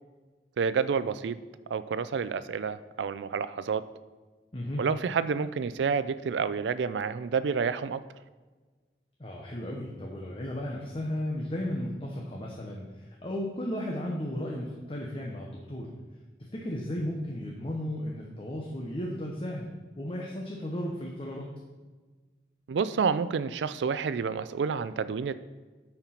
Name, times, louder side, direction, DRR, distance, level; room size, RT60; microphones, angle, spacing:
voice 1, 0.6-1.4 1.7-3.9 4.8-8.0 22.7-25.3, right 6 dB, 90° right, 15 dB, 0.4 m, -29 dB
voice 2, 4.5-4.9 9.2-15.9 16.4-19.7 20.0-21.6, left 1 dB, 30° left, -1 dB, 0.8 m, -35 dB
8.9 x 4.5 x 5.7 m, 1.3 s
head